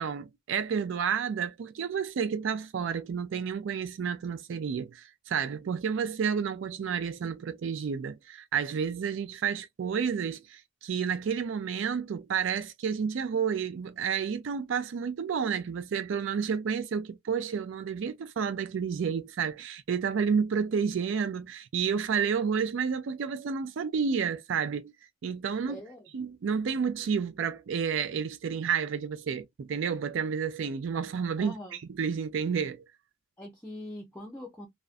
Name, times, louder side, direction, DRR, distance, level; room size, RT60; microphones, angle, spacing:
voice 1, 0.0-24.9 25.2-25.8 26.1-31.6 32.0-32.8, right 6 dB, 65° right, 0.4 m, -30 dB
voice 2, 25.7-26.1 31.4-31.8 33.4-34.7, left 1 dB, 10° left, 0.5 m, -43 dB
2.4 x 2.1 x 2.4 m
head